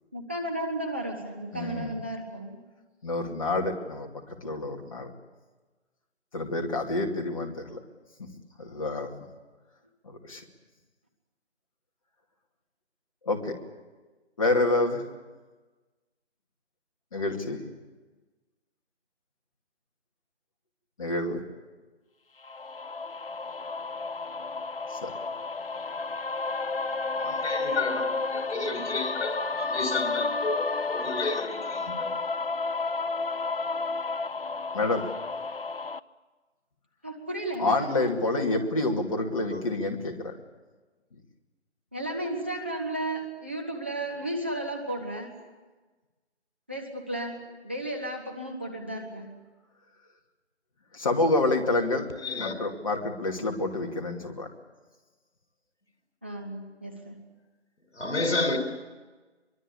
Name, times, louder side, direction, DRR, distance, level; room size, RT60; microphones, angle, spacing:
voice 1, 0.1-2.6 37.0-38.4 41.9-45.3 46.7-49.3 56.2-57.2, right 1 dB, 10° right, 0.8 m, -34 dB
voice 2, 1.5-2.0 3.0-5.1 6.3-7.8 8.2-8.3 8.6-9.1 10.0-10.4 13.2-13.6 14.4-15.1 17.1-17.6 21.0-21.4 24.9-25.1 34.7-35.1 37.6-40.3 50.9-52.1 52.4-54.5, left 2 dB, 30° left, 2.6 m, -28 dB
sound 1, 22.4-36.0, left 3 dB, 55° left, 0.8 m, -32 dB
voice 3, 27.1-32.1 39.5-39.6 52.2-52.5 57.9-58.6, left 3 dB, 70° left, 5.8 m, -31 dB
23.5 x 23.5 x 8.5 m
figure-of-eight pair, 160°, 35 cm